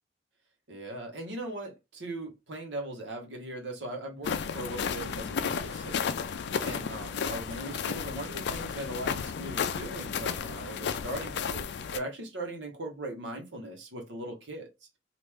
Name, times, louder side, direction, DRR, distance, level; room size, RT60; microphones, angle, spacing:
voice 1, 0.7-6.2 6.6-11.7 11.9-14.7, right 1 dB, 75° right, 1.1 m, -39 dB
sound 1, 4.2-12.0, left 6 dB, 65° left, 0.4 m, -33 dB
3.0 x 2.5 x 3.4 m
head